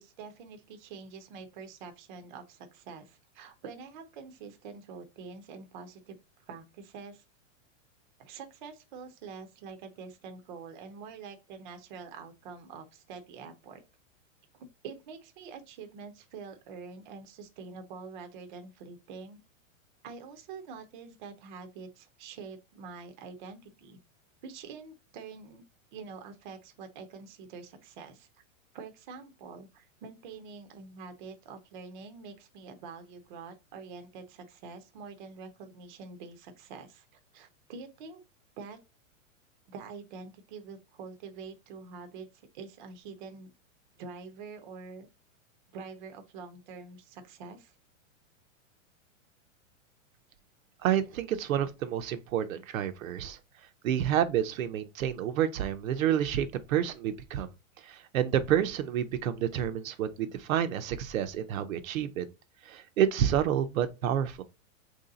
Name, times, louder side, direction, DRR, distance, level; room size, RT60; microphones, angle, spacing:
voice 1, 0.0-6.2 6.5-7.2 8.2-13.8 14.5-19.4 20.0-24.0 24.4-25.6 25.9-28.3 28.7-38.2 38.6-38.8 39.7-43.5 44.0-45.1 45.7-47.8, right 5 dB, 35° right, 0.5 m, -46 dB
voice 2, 50.8-53.4 53.8-57.5 57.8-62.3 62.7-64.4, right 10 dB, 80° right, 0.6 m, -29 dB
3.1 x 2.7 x 3.8 m
supercardioid pair, 160°, 40 cm